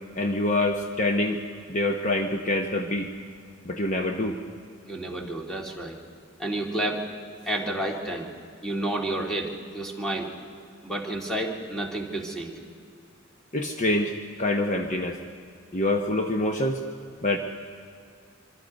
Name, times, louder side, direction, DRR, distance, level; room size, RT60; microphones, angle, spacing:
voice 1, 0.2-1.4 1.7-3.1 3.7-4.4 13.5-15.2 15.7-16.8 17.2-17.4, left 1 dB, 35° left, 4 dB, 1.0 m, -25 dB
voice 2, 4.9-6.0 6.4-7.0 7.4-8.3 8.6-10.3 10.8-12.5, right 1 dB, 5° left, 0 dB, 2.3 m, -30 dB
25.5 x 24.0 x 5.3 m, 2.3 s
head